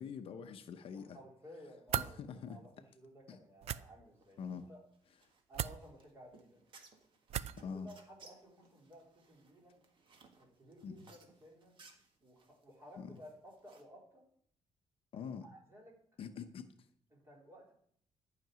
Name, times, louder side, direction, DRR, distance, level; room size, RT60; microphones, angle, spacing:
voice 1, 0.0-1.2 2.0-2.6 3.3-3.4 4.4-4.7 7.6-7.9 10.8-11.0 13.0-13.2 15.1-15.4 16.2-16.7, left 6 dB, 50° left, 8 dB, 0.8 m, -44 dB
voice 2, 0.9-4.8 5.5-6.6 7.5-9.8 10.4-11.8 12.2-14.2 15.4-15.9 17.1-17.7, equal, 25° right, -1 dB, 3.8 m, -56 dB
sound 1, 1.9-2.1 3.6-3.8 5.5-5.8 7.3-7.6, right 11 dB, 60° right, 0.5 m, -36 dB
sound 2, 4.1-13.8, right 4 dB, 45° right, 1.7 m, -63 dB
12.0 x 6.0 x 9.3 m, 0.65 s
cardioid pair, 175°, 12 cm